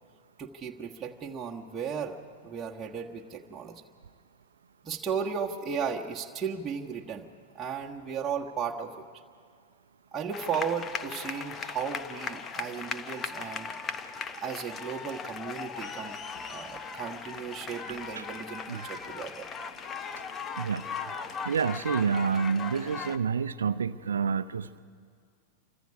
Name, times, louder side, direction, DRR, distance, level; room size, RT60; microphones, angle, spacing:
voice 1, 0.4-2.2 2.4-3.8 4.8-7.3 7.5-8.9 10.1-13.7 14.3-16.2 16.4-19.5, right 6 dB, 20° right, -2 dB, 1.5 m, -35 dB
sound 1, 10.3-23.2, left 5 dB, 25° left, 1.1 m, -38 dB
voice 2, 18.7-19.0 20.6-21.1 21.4-24.8, right 6 dB, 70° right, 15 dB, 0.6 m, -29 dB
27.5 x 25.0 x 5.0 m, 2.1 s
figure-of-eight pair, 90°, 0 cm